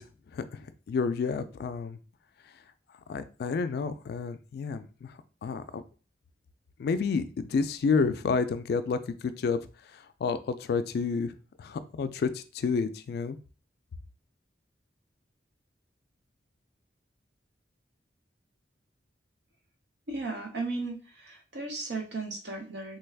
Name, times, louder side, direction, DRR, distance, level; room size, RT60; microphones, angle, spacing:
voice 1, 0.0-2.0 2.4-2.6 3.1-5.8 6.8-13.4, left 5 dB, 60° left, 11 dB, 0.3 m, -30 dB
voice 2, 20.1-23.0, right 3 dB, 70° right, 4 dB, 0.7 m, -35 dB
3.3 x 2.3 x 3.3 m, 0.36 s
head